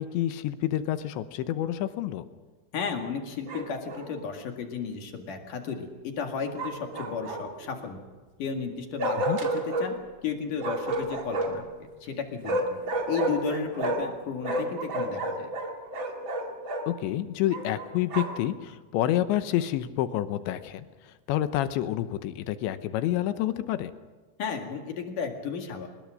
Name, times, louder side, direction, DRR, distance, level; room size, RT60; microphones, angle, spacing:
voice 1, 0.0-2.2 9.3-9.4 16.9-23.9, left 13 dB, 75° left, 11 dB, 2.9 m, -28 dB
voice 2, 2.7-8.0 8.4-10.0 10.2-11.6 12.0-12.8 13.1-15.5 24.4-25.9, left 5 dB, 55° left, 3 dB, 2.8 m, -33 dB
Bark, 3.5-4.1 6.5-7.6 9.0-9.9 10.6-11.7 12.4-14.2 14.4-16.8 17.5-18.4, right 1 dB, 45° right, 1.6 m, -30 dB
23.0 x 20.5 x 6.4 m, 1.3 s
omnidirectional pair, 5.8 m